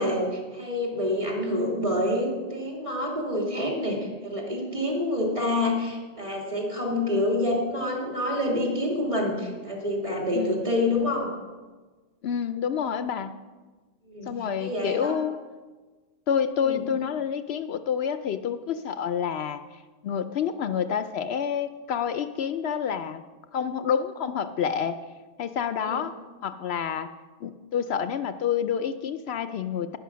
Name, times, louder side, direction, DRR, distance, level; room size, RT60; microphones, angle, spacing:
voice 1, 0.0-4.0 4.2-11.3 14.1-14.3 14.6-15.2 16.6-16.8 25.8-26.0, left 1 dB, 30° right, -1 dB, 2.9 m, -27 dB
voice 2, 6.9-7.2 10.4-10.6 12.2-13.3 14.3-15.4 16.3-23.2 23.5-25.0 25.4-26.1 26.4-27.1 27.4-30.0, left 8 dB, 70° left, 11 dB, 0.8 m, -28 dB
11.5 x 10.0 x 6.2 m, 1.3 s
omnidirectional pair, 1.1 m